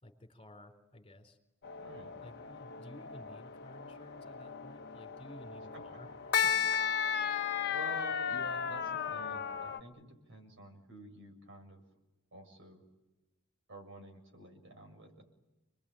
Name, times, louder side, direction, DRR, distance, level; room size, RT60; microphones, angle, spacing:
voice 1, 0.0-1.4 2.2-6.6, left 1 dB, 30° left, 4 dB, 3.9 m, -54 dB
sound 1, 1.6-9.8, left 7 dB, 55° left, 0.9 m, -35 dB
voice 2, 1.8-2.1 5.7-6.0 7.7-11.8 12.3-12.8 13.7-15.2, right 2 dB, 60° right, 3 dB, 7.2 m, -49 dB
29.0 x 22.0 x 9.0 m, 1.0 s
head